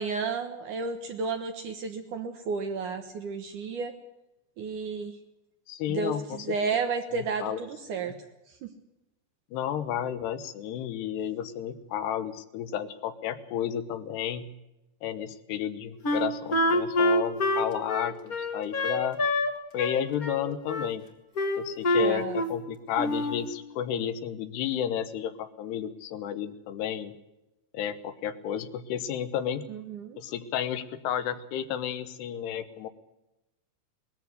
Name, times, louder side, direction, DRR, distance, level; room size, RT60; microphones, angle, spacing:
voice 1, 0.0-4.0 4.6-5.2 5.9-8.1 8.6-8.7 22.0-22.4 29.7-30.2, right 5 dB, 65° right, 6 dB, 2.2 m, -32 dB
voice 2, 5.7-6.6 7.1-7.6 9.5-14.5 15.0-19.2 19.7-21.0 21.6-27.1 27.7-29.6 30.2-32.9, left 9 dB, 80° left, 11 dB, 3.1 m, -32 dB
Wind instrument woodwind instrument, 16.0-19.5 19.8-20.9 21.3-22.6 22.9-23.4, left 1 dB, 45° left, 1.1 m, -26 dB
20.5 x 14.0 x 9.4 m, 0.97 s
omnidirectional pair, 4.9 m